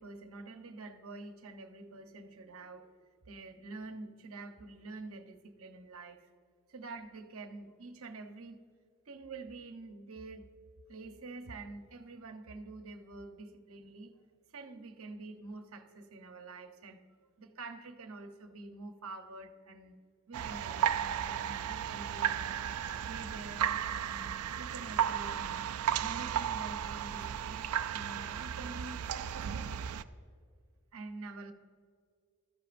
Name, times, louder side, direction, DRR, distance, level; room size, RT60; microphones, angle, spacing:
voice 1, 0.0-2.9 3.3-6.3 6.7-8.6 9.1-10.4 10.9-14.2 14.5-17.0 17.4-19.9 20.3-22.6 22.9-25.6 26.0-29.8 30.9-31.5, right 3 dB, 70° right, 0.9 m, -47 dB
sound 1, 20.3-30.0, right 9 dB, 90° right, 0.4 m, -34 dB
16.0 x 13.0 x 2.6 m
head